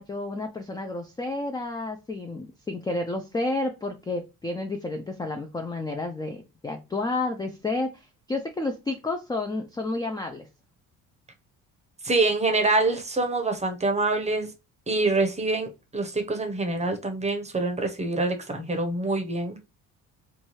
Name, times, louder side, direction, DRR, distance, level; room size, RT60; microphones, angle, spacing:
voice 1, 0.0-10.5, left 2 dB, 10° left, 0.3 m, -31 dB
voice 2, 12.0-14.5 14.9-19.6, right 2 dB, 20° right, 0.7 m, -25 dB
2.6 x 2.3 x 3.0 m
supercardioid pair, 70°, 38 cm